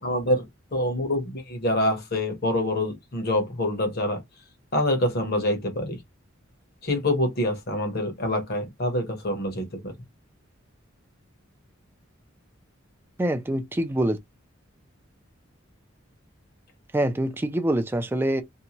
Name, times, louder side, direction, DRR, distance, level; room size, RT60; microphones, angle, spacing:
voice 1, 0.0-0.4 0.7-4.2 4.7-6.0 6.8-9.9, left 1 dB, 50° left, 1.0 m, -26 dB
voice 2, 13.2-14.2 16.9-18.4, right 1 dB, 10° right, 0.4 m, -25 dB
2.7 x 2.2 x 2.9 m
head